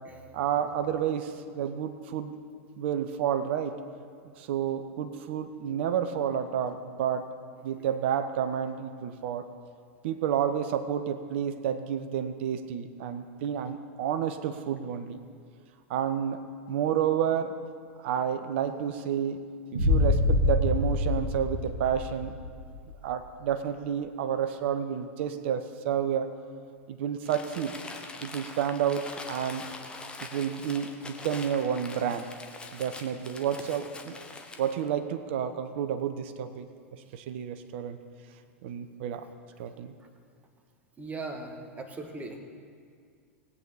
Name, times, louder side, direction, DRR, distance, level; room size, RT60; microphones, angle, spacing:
voice 1, 0.3-2.3 2.8-3.8 4.4-7.3 7.6-9.5 10.0-15.2 15.9-16.4 16.7-17.6 18.0-19.4 19.7-22.4 23.0-26.3 26.9-27.8 28.2-29.7 30.2-32.3 32.7-34.2 34.6-36.7 37.1-38.0 38.6-39.3 39.6-39.9, right 9 dB, 55° right, 11 dB, 0.9 m, -30 dB
Boom, 19.7-22.7, left 2 dB, 80° right, 1.9 m, -25 dB
Crumpling crinkling, 27.2-34.8, left 3 dB, 10° left, 1.1 m, -43 dB
voice 2, 41.0-42.4, right 3 dB, 20° right, 5 dB, 1.6 m, -38 dB
20.0 x 8.6 x 4.1 m, 2.1 s
figure-of-eight pair, 90°, 8 cm